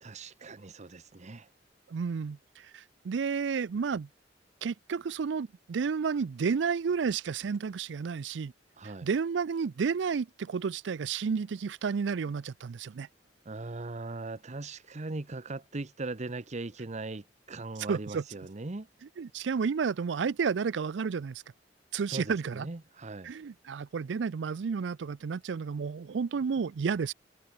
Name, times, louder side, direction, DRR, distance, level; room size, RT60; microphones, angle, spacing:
voice 1, 0.0-1.5 8.8-9.1 13.5-18.9 22.1-23.3, right 2 dB, 40° right, 0.9 m, -39 dB
voice 2, 1.9-4.1 4.6-8.5 9.0-13.1 17.9-18.2 19.2-21.4 21.9-22.7 23.2-27.1, right 5 dB, 75° right, 0.4 m, -31 dB
head